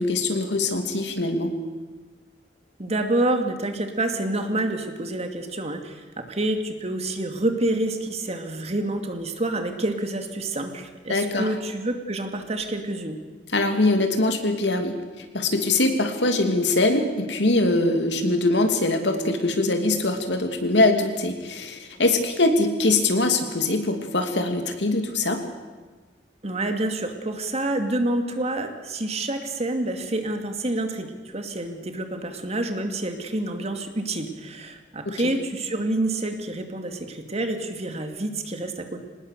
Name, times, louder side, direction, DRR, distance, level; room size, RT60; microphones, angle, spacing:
voice 1, 0.0-1.5 11.1-11.5 13.5-15.0 15.3-25.4, left 2 dB, 80° left, 5 dB, 2.8 m, -22 dB
voice 2, 2.8-13.2 26.4-39.0, right 2 dB, 40° right, 5 dB, 2.4 m, -28 dB
25.0 x 19.5 x 6.8 m, 1.4 s
head